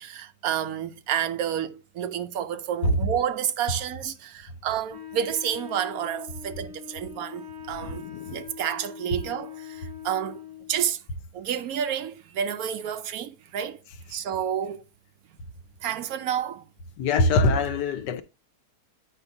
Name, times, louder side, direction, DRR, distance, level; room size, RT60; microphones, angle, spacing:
voice 1, 0.0-10.4 10.7-11.0 11.3-13.8 14.1-14.8 15.8-16.6, right 9 dB, 65° right, 1.0 m, -30 dB
Wind instrument woodwind instrument, 4.9-10.7, left 8 dB, 25° right, 0.4 m, -42 dB
voice 2, 7.7-8.5 17.0-18.2, left 2 dB, 85° left, 1.4 m, -24 dB
8.8 x 5.3 x 2.7 m
omnidirectional pair, 1.8 m